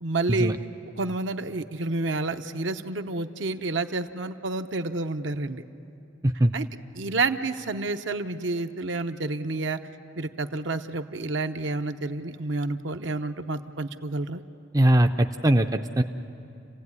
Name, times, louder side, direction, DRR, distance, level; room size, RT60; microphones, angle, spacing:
voice 1, 0.0-0.5 1.0-5.6 6.5-6.7 7.0-9.8 10.2-14.4, right 3 dB, 65° right, 8 dB, 0.8 m, -29 dB
voice 2, 14.7-16.0, right 1 dB, 15° right, 6 dB, 0.5 m, -21 dB
29.0 x 16.0 x 9.7 m, 2.7 s
head